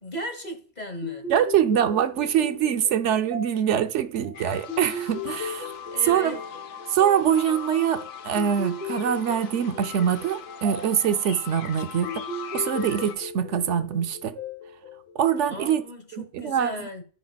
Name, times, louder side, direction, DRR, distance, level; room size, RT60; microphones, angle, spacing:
voice 1, 0.0-1.3 5.9-6.4 15.5-17.0, left 1 dB, 40° left, 1.4 m, -36 dB
sound 1, 1.0-15.8, left 3 dB, 60° right, 1.9 m, -37 dB
voice 2, 1.3-5.7 6.1-6.4 6.9-12.2 12.5-14.4 15.1-15.8 16.1-16.7, right 9 dB, 85° right, 1.0 m, -24 dB
sound 2, 4.3-13.2, left 8 dB, 90° left, 1.1 m, -40 dB
14.5 x 5.1 x 2.3 m
omnidirectional pair, 1.2 m